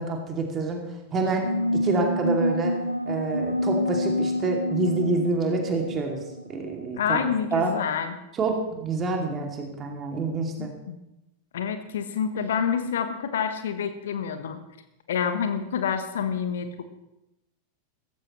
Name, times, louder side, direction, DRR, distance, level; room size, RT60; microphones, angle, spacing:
voice 1, 0.0-2.8 3.1-6.2 6.5-7.7 8.4-10.7, right 3 dB, 25° right, 2 dB, 2.6 m, -27 dB
sound 1, 1.4-6.6, left 1 dB, 85° left, 0.5 m, -27 dB
voice 2, 7.0-8.2 10.6-11.0 11.5-14.6 15.1-16.9, left 7 dB, 60° left, 9 dB, 1.1 m, -28 dB
16.0 x 14.5 x 3.2 m, 0.91 s
figure-of-eight pair, 90°, 0 cm